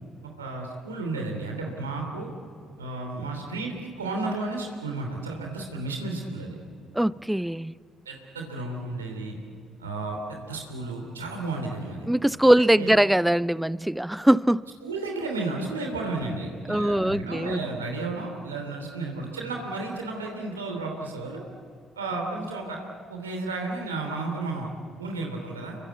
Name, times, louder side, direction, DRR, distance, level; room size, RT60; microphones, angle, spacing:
voice 1, 0.4-2.3 2.8-6.6 8.0-9.4 9.8-12.0 12.6-12.9 14.8-21.4 22.0-22.8 23.1-24.7 25.0-25.8, right 3 dB, 90° right, 3.1 m, -33 dB
voice 2, 6.9-7.7 12.1-14.6 16.7-17.7, right 1 dB, 5° right, 0.6 m, -21 dB
30.0 x 23.0 x 8.3 m
hypercardioid pair, 45°, 0 cm